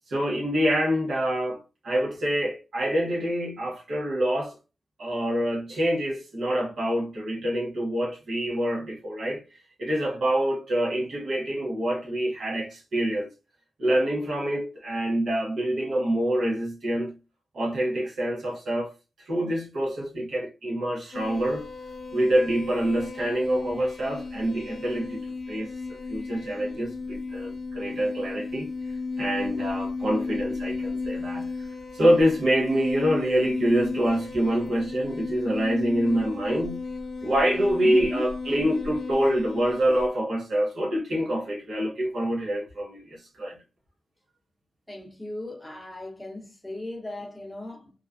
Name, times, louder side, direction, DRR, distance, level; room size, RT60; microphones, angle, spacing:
voice 1, 0.1-4.6 5.0-9.4 9.8-13.3 13.8-17.2 17.5-18.9 19.2-21.7 22.1-28.7 29.2-36.8 37.2-43.6, right 1 dB, 60° right, 0.6 m, -26 dB
sound 1, 21.1-40.1, left 4 dB, 45° left, 0.3 m, -34 dB
voice 2, 37.8-38.2 44.9-47.9, left 1 dB, 5° left, 0.8 m, -36 dB
2.4 x 2.2 x 2.3 m
wide cardioid pair, 165°, 0 cm